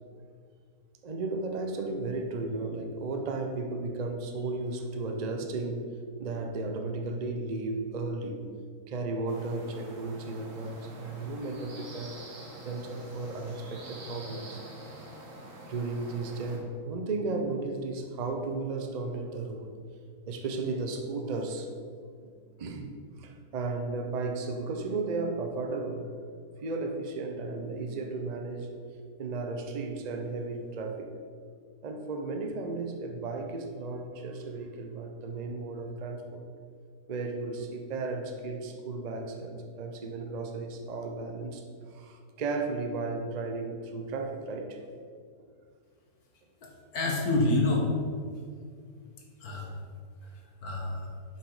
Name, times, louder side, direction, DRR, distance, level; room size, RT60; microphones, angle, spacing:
voice 1, 1.0-5.8 6.2-8.4 8.9-12.2 12.6-14.6 15.7-19.8 20.3-21.7 22.2-22.3 22.6-26.1 26.6-28.7 29.2-31.1 31.8-36.4 37.1-44.8 45.4-45.5, right 3 dB, 85° right, 4 dB, 0.3 m, -34 dB
sound 1, 9.3-16.6, right 1 dB, 55° right, 1.6 m, -46 dB
voice 2, 46.6-47.9 49.4-49.7 50.6-51.1, left 2 dB, 60° left, 0 dB, 1.7 m, -27 dB
7.2 x 5.8 x 4.8 m, 2.1 s
omnidirectional pair, 1.8 m